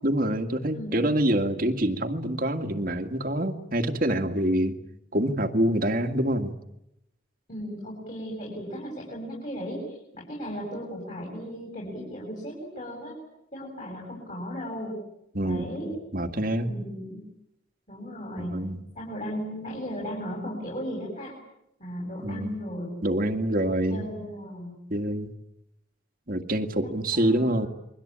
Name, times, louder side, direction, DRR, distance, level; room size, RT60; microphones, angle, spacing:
voice 1, 0.0-4.8 5.1-6.5 15.3-16.7 18.4-18.8 22.2-22.6 23.0-24.1 24.9-25.3 26.3-27.7, right 1 dB, 45° right, 7 dB, 2.0 m, -26 dB
voice 2, 0.7-1.1 7.5-13.1 13.5-15.0 15.4-15.9 16.6-17.2 17.9-18.6 18.9-21.3 21.8-22.9 23.7-24.8 26.8-27.7, equal, 40° left, -2 dB, 7.7 m, -36 dB
29.0 x 23.0 x 8.8 m, 0.82 s
head